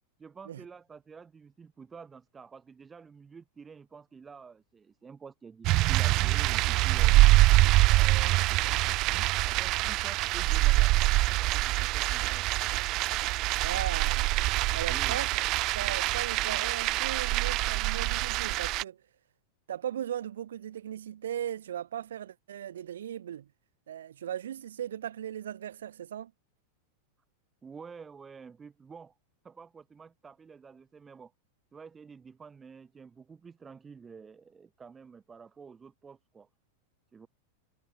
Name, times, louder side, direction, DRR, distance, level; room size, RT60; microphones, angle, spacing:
voice 1, 0.2-7.2 7.9-10.9 11.3-12.4 14.9-15.2 27.6-29.2 29.4-31.3 31.7-36.5 37.1-37.3, right 5 dB, 15° right, 4.4 m, -49 dB
sound 1, 5.6-18.8, right 20 dB, 40° right, 0.6 m, -25 dB
voice 2, 13.6-14.3 14.7-15.3 15.7-19.0 19.7-23.5 23.9-26.3, right 10 dB, 60° right, 5.2 m, -37 dB
figure-of-eight pair, 90°, 0 cm